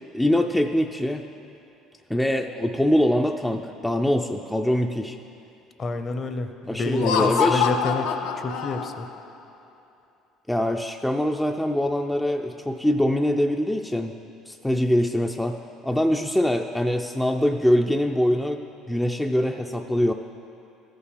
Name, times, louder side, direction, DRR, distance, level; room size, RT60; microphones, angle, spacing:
voice 1, 0.1-1.2 2.1-5.2 6.7-7.7 10.5-14.1 14.5-18.6 18.9-20.1, left 1 dB, 5° left, 4 dB, 0.3 m, -23 dB
voice 2, 5.8-8.1 8.4-9.1, left 3 dB, 40° left, 8 dB, 0.7 m, -28 dB
Laughter, 6.9-9.2, left 7 dB, 80° left, 0.5 m, -25 dB
13.5 x 5.5 x 5.0 m, 2.7 s
supercardioid pair, 90°, 0 cm